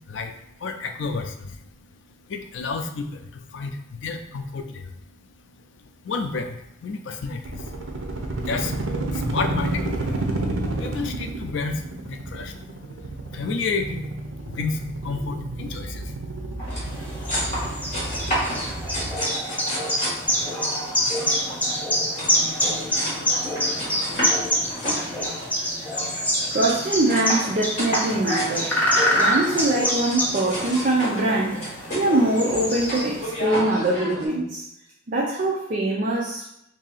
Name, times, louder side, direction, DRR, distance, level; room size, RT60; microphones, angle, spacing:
voice 1, 0.0-14.2 14.4-17.0 17.2-18.5, left 4 dB, 70° left, 6 dB, 0.4 m, -32 dB
sound 1, 7.4-19.2, right 2 dB, 90° right, 0.6 m, -30 dB
sound 2, 16.6-34.3, equal, 40° left, 1.3 m, -32 dB
sound 3, 16.8-33.4, equal, 10° left, 0.6 m, -26 dB
voice 2, 26.5-28.8 29.1-34.6 35.1-36.4, right 2 dB, 45° right, -3 dB, 0.5 m, -23 dB
2.7 x 2.7 x 4.0 m, 0.79 s
head